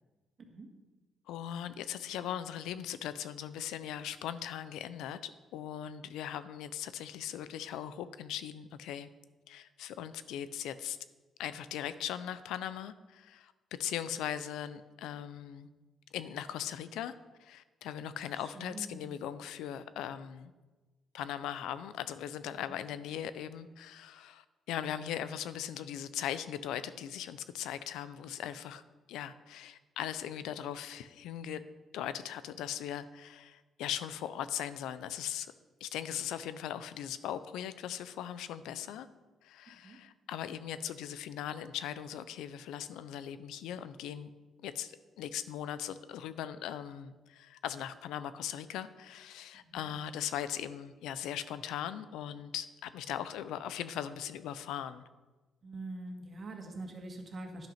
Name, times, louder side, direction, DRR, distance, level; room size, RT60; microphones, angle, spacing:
voice 1, 1.3-9.1 9.5-11.0 11.4-13.5 13.8-15.7 16.1-17.1 17.4-20.5 21.1-28.8 29.1-31.6 31.9-35.5 35.8-39.1 39.4-44.3 44.6-55.0, left 10 dB, 90° left, 0.5 m, -39 dB
voice 2, 18.4-19.0 22.7-22.8 39.8-40.0 49.6-49.9 55.6-57.7, right 2 dB, 45° right, 1.9 m, -44 dB
10.5 x 5.9 x 5.7 m
cardioid pair, 90°, 0 cm